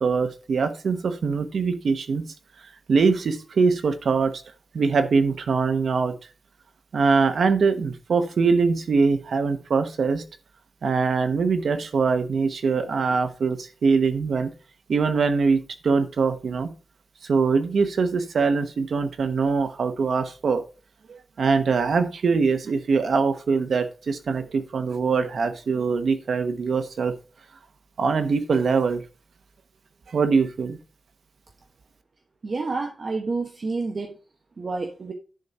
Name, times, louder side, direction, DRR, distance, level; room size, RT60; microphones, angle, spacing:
voice 1, 0.0-2.2 2.9-4.3 4.7-6.1 6.9-10.2 10.8-14.5 14.9-16.7 17.2-20.6 21.1-27.1 28.0-29.0 30.1-30.8, right 5 dB, 85° right, 8 dB, 1.0 m, -23 dB
voice 2, 32.4-34.1 34.6-35.1, right 3 dB, 50° right, 3 dB, 1.1 m, -29 dB
10.5 x 4.3 x 4.8 m, 0.35 s
wide cardioid pair, 115°, 0 cm